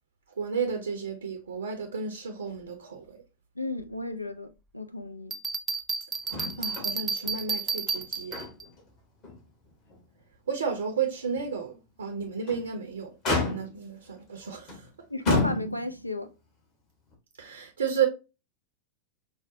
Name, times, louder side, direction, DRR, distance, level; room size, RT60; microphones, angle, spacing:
voice 1, 0.4-3.2 6.6-8.4 10.5-13.1 13.4-14.9 17.4-18.1, right 6 dB, 70° right, 0.5 m, -32 dB
voice 2, 3.6-5.4 15.1-16.3, left 2 dB, 85° left, 0.3 m, -34 dB
Bell, 5.3-8.7, right 5 dB, 20° right, 0.3 m, -32 dB
Motor vehicle (road), 6.3-6.9 7.2-7.3 7.9-8.8 9.2-9.4 9.9-10.0 12.2-12.7 13.2-13.9 14.7-14.8 15.3-16.1 17.1-17.2, left 3 dB, 40° left, 1.6 m, -29 dB
4.8 x 2.1 x 2.7 m
figure-of-eight pair, 90°, 0 cm